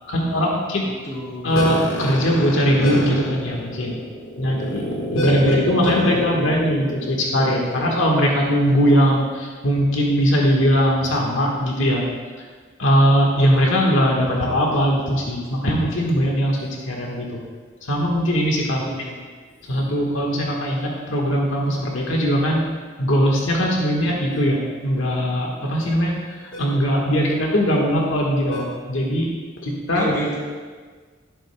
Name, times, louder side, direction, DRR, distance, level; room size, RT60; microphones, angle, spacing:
voice 1, 0.1-0.8 1.4-12.0 12.8-17.4 17.8-18.8 19.7-22.6 23.0-29.3 29.6-30.1, equal, 85° left, -1 dB, 1.4 m, -20 dB
voice 2, 1.0-1.5 18.8-19.1 29.9-30.4, right 1 dB, 20° left, -7 dB, 3.1 m, -29 dB
11.5 x 11.5 x 2.2 m, 1.5 s
head